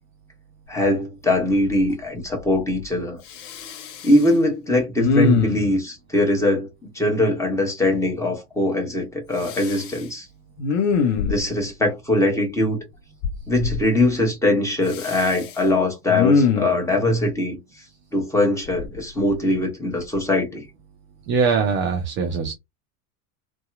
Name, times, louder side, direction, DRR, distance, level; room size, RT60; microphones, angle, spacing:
voice 1, 0.7-3.2 4.0-6.7 6.9-10.3 11.3-12.8 13.5-17.6 18.1-20.6, left 1 dB, 5° left, 1.0 m, -21 dB
Respiratory sounds, 0.8-0.9 1.4-1.9 2.2-2.9 3.3-4.3 5.0-5.8 9.4-10.0 10.6-11.7 13.2-13.8 14.9-15.6 16.1-16.8 18.7-19.6 20.0-20.2, left 5 dB, 55° left, 0.7 m, -24 dB
voice 2, 21.3-22.5, right 5 dB, 25° right, 0.5 m, -22 dB
2.7 x 2.2 x 2.4 m
figure-of-eight pair, 80°, 44 cm